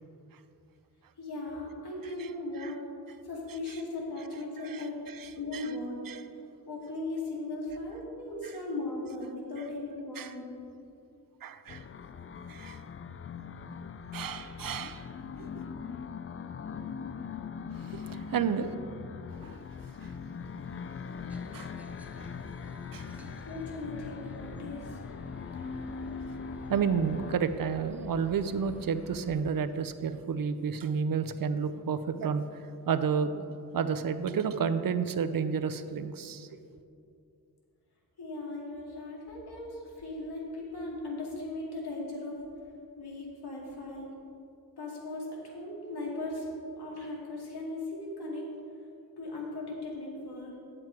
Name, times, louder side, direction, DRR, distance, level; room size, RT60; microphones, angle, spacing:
voice 1, 1.2-2.8 3.2-5.0 5.3-6.0 6.7-10.6 23.5-25.0 38.2-42.4 43.0-44.1 44.8-48.5 49.2-50.5, left 2 dB, 80° left, -3 dB, 2.3 m, -38 dB
voice 2, 4.6-5.7 6.1-6.2 10.2-10.3 11.4-11.8 12.5-12.8 14.1-15.1 15.4-15.5 17.7-18.8 19.4-19.6 20.0-20.1 21.5-21.7 22.9-23.5 26.7-32.4 32.9-33.4 33.7-36.5, right 6 dB, 60° right, 11 dB, 0.6 m, -31 dB
sound 1, 11.7-27.4, left 6 dB, 35° left, 0.4 m, -41 dB
sound 2, 21.3-29.4, equal, 5° right, 0.7 m, -51 dB
8.9 x 7.8 x 4.5 m, 2.6 s
cardioid pair, 70°, 39 cm